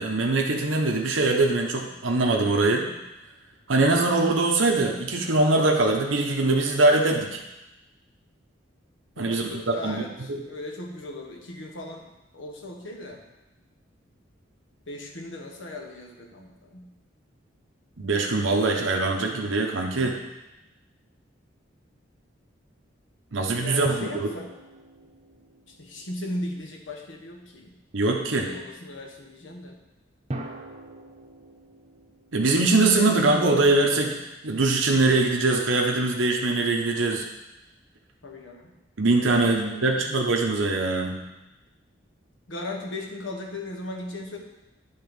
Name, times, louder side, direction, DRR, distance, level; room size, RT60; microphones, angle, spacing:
voice 1, 0.0-2.9 3.7-7.4 9.2-9.5 9.8-10.0 18.0-20.2 23.3-24.3 27.9-28.5 32.3-34.1 34.4-37.2 39.0-41.2, right 2 dB, 85° right, 1 dB, 0.9 m, -22 dB
voice 2, 9.1-13.2 14.9-16.9 23.6-24.5 25.7-27.8 28.1-29.8 38.2-38.7 39.4-40.0 42.5-44.4, left 2 dB, 80° left, 1 dB, 1.3 m, -37 dB
sound 1, 23.8-26.7 30.3-33.7, right 1 dB, 35° right, 0.8 m, -41 dB
9.8 x 3.8 x 5.3 m, 0.97 s
head